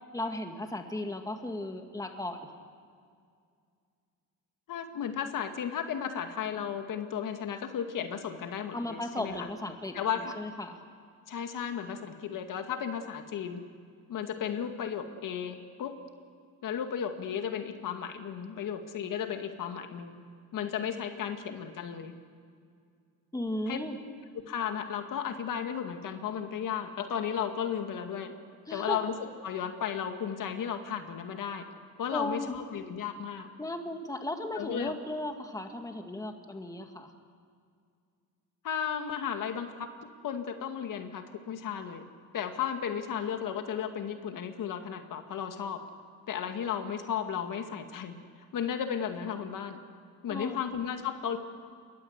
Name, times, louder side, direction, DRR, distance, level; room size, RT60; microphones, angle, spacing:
voice 1, 0.1-2.5 8.7-10.8 23.3-24.0 28.7-29.0 32.1-32.6 33.6-37.1 50.3-50.6, left 1 dB, 10° left, 5 dB, 2.1 m, -36 dB
voice 2, 4.7-9.5 9.9-10.3 11.3-13.6 14.1-16.0 16.6-20.2 20.5-22.1 23.7-23.8 24.5-28.3 28.7-31.7 32.0-33.5 34.6-34.9 38.6-39.9 40.2-42.0 42.3-45.8 46.3-48.2 48.5-49.8 50.2-51.4, left 8 dB, 65° left, 6 dB, 2.1 m, -34 dB
27.5 x 22.5 x 8.1 m, 2.2 s
cardioid pair, 125°, 34 cm